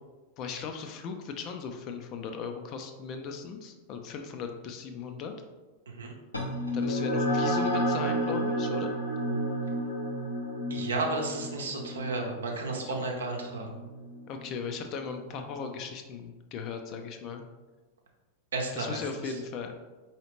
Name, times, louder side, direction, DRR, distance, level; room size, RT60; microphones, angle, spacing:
voice 1, 0.4-5.3 6.7-9.0 12.9-13.0 14.3-17.4 18.7-19.7, left 5 dB, 40° left, 5 dB, 0.4 m, -37 dB
sound 1, 6.3-15.2, equal, 80° left, 0.8 m, -31 dB
voice 2, 10.7-13.8 18.5-19.0, right 2 dB, 70° right, 1 dB, 0.7 m, -32 dB
4.7 x 2.9 x 3.1 m, 1.2 s
figure-of-eight pair, 90°, 0 cm